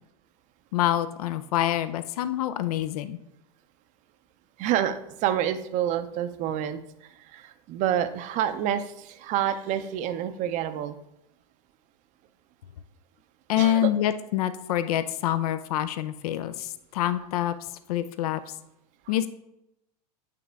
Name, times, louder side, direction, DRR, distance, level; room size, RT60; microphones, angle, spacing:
voice 1, 0.7-3.2 13.5-17.5 17.9-18.4 19.1-19.3, left 12 dB, 65° left, 12 dB, 0.5 m, -26 dB
voice 2, 4.6-6.8 7.3-11.0 13.6-13.9, right 10 dB, 40° right, 11 dB, 0.6 m, -28 dB
8.5 x 3.6 x 3.4 m, 0.84 s
hypercardioid pair, 115°, 20 cm